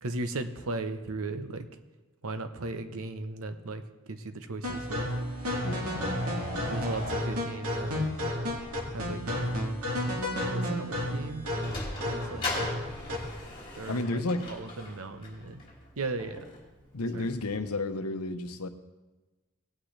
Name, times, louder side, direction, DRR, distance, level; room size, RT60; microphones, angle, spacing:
voice 1, 0.0-1.7 2.2-3.8 4.1-5.1 5.9-6.2 6.7-8.1 8.9-9.3 10.5-11.5 12.0-12.5 13.7-15.6 16.0-16.5 17.1-17.3, right 2 dB, 70° right, 9 dB, 0.8 m, -36 dB
sound 1, 4.6-13.4, left 1 dB, 90° right, 2.2 m, -32 dB
Sliding door, 11.1-17.7, left 2 dB, 25° left, 3.1 m, -40 dB
voice 2, 13.9-14.5 16.9-18.7, left 2 dB, 85° left, 8 dB, 0.9 m, -31 dB
18.0 x 8.8 x 3.3 m, 1.1 s
head